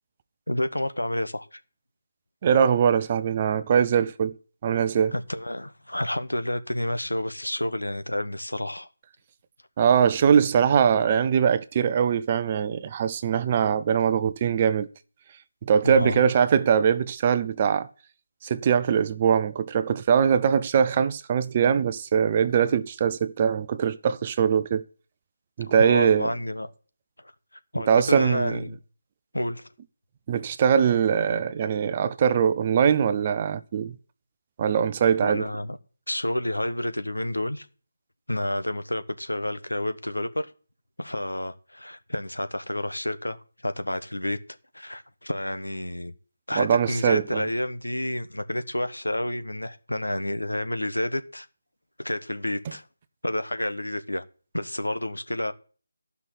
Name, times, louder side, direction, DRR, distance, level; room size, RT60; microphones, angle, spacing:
voice 1, 0.5-1.6 5.1-8.9 15.8-16.3 25.8-26.7 27.7-28.8 29.3-29.7 35.2-35.8 36.1-37.7 38.3-40.5 41.0-44.4 44.7-46.1 46.5-51.5 52.0-52.8 53.2-54.2 54.5-55.5, left 1 dB, 90° left, 1.1 m, -29 dB
voice 2, 2.4-4.3 4.6-5.1 9.8-14.9 15.6-17.9 18.4-24.8 25.6-26.3 27.9-28.6 30.3-33.9 34.6-35.5 46.5-47.5, right 7 dB, 30° right, 0.6 m, -22 dB
12.0 x 5.8 x 8.0 m
figure-of-eight pair, 155°, 0 cm